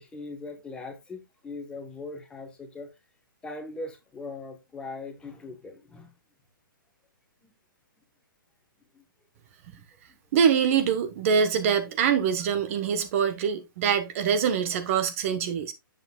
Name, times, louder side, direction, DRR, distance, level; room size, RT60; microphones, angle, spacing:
voice 1, 0.0-2.9 3.4-6.1 7.4-7.5 8.9-9.0, left 3 dB, 10° left, 1.3 m, -40 dB
voice 2, 10.3-15.7, right 7 dB, 35° right, 1.2 m, -24 dB
8.8 x 7.7 x 2.3 m
hypercardioid pair, 160°, 12 cm